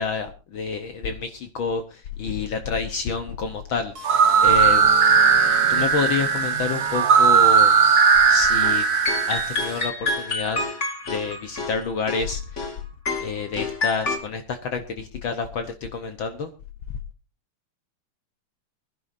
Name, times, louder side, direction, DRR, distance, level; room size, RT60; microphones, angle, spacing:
voice 1, 0.0-3.9 4.4-4.9 5.7-7.7 8.3-8.8 9.3-10.6 11.1-12.4 13.2-16.5, left 5 dB, 75° left, 7 dB, 1.1 m, -28 dB
sound 1, 4.0-9.8, right 6 dB, 80° right, 0.8 m, -18 dB
sound 2, 8.6-8.8 9.1-12.8 13.1-14.2, left 3 dB, 25° left, 2.0 m, -28 dB
25.0 x 11.0 x 2.6 m, 0.30 s
omnidirectional pair, 3.7 m